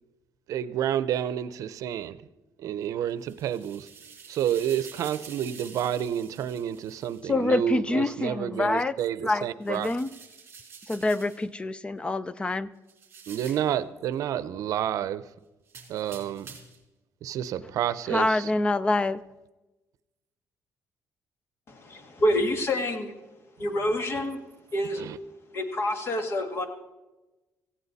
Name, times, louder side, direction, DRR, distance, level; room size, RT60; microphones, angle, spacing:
voice 1, 0.5-2.2 2.6-3.9 4.3-9.9 13.3-15.2 15.9-16.5 17.2-18.5 25.0-25.2, right 10 dB, 70° right, 0.7 m, -29 dB
sound 1, 3.1-7.2 9.6-11.4 12.9-13.7 15.7-16.8, right 6 dB, 40° right, 3.4 m, -48 dB
voice 2, 7.3-8.9 9.2-10.1 10.9-12.7 18.1-19.2, left 2 dB, 15° left, 0.4 m, -26 dB
voice 3, 21.7-23.1 23.6-24.4 24.7-25.0 25.5-26.7, left 1 dB, 45° left, 2.0 m, -27 dB
18.0 x 15.5 x 4.2 m
cardioid pair, 140°, 6 cm